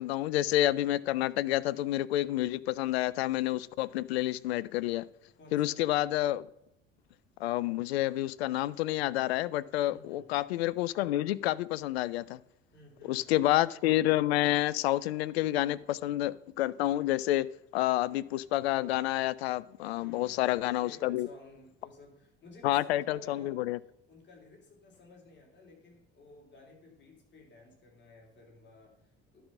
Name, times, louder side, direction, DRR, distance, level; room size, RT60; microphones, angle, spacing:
voice 1, 0.0-5.1 5.5-6.5 7.4-12.4 13.1-17.5 17.7-21.3 22.6-23.8, left 15 dB, 65° left, 0.5 m, -29 dB
voice 2, 5.3-5.8 9.9-10.2 12.7-13.4 20.0-20.5 20.8-23.6 24.1-29.4, left 3 dB, 30° left, 3.3 m, -54 dB
11.5 x 5.5 x 5.9 m
figure-of-eight pair, 60°, 34 cm